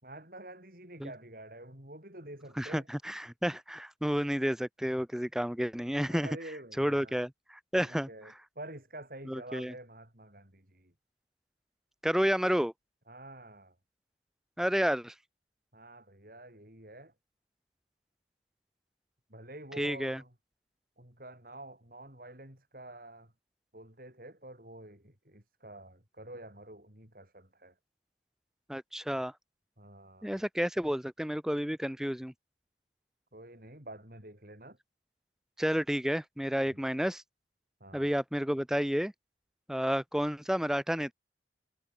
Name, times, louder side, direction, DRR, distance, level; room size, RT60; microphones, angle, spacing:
voice 1, 0.0-2.9 6.1-7.1 7.8-10.9 13.1-13.7 15.7-17.1 19.3-20.3 21.0-23.3 23.7-27.7 29.8-30.4 33.3-34.8 36.7-36.8 37.8-38.1, right 1 dB, 50° right, 6.6 m, -48 dB
voice 2, 2.6-6.3 6.8-8.3 9.3-9.7 12.0-12.7 14.6-15.1 19.8-20.2 28.7-29.3 30.2-32.3 35.6-37.2 37.9-39.1 39.7-41.1, equal, 5° right, 0.5 m, -31 dB
head